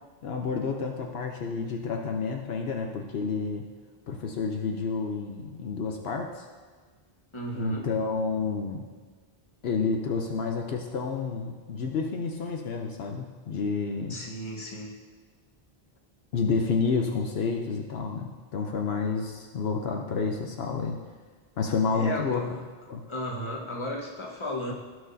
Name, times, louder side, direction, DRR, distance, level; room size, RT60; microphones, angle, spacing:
voice 1, 0.2-3.7 4.1-6.5 7.5-8.8 9.6-14.2 16.3-21.0 21.6-22.4 22.9-23.0, left 5 dB, 70° left, 2 dB, 0.9 m, -29 dB
voice 2, 7.3-7.9 14.1-15.0 21.9-22.6 23.1-24.7, equal, 30° left, -2 dB, 1.3 m, -34 dB
16.5 x 6.2 x 2.7 m, 1.5 s
omnidirectional pair, 1.1 m